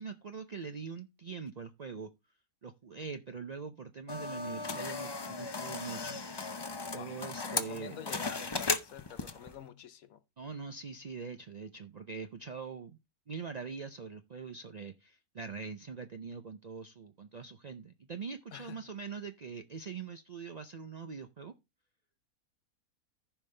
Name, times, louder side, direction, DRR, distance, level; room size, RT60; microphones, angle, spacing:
voice 1, 0.0-2.1 2.6-6.2 6.9-8.0 10.4-13.0 13.3-21.5, right 5 dB, 70° right, 0.4 m, -43 dB
sound 1, 4.1-9.5, left 3 dB, 30° left, 0.4 m, -37 dB
voice 2, 7.5-10.2 18.5-18.8, left 8 dB, 70° left, 1.2 m, -47 dB
14.5 x 5.4 x 3.2 m
omnidirectional pair, 1.6 m